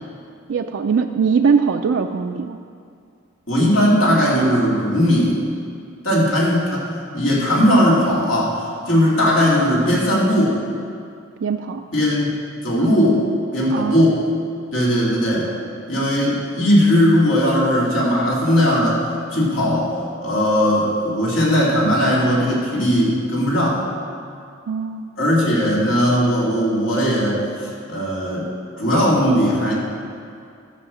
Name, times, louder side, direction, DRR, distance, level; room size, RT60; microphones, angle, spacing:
voice 1, 0.5-2.6 6.1-6.4 11.4-11.8 13.7-14.0 24.7-25.1, right 5 dB, 70° right, 4 dB, 0.4 m, -21 dB
voice 2, 3.5-5.4 6.0-6.8 7.1-10.6 11.9-12.3 12.6-13.2 13.5-14.3 14.7-15.5 15.9-19.0 19.3-19.9 20.2-23.8 25.2-28.5 28.8-29.7, equal, 80° left, -5 dB, 2.8 m, -18 dB
12.5 x 5.7 x 7.1 m, 2.4 s
head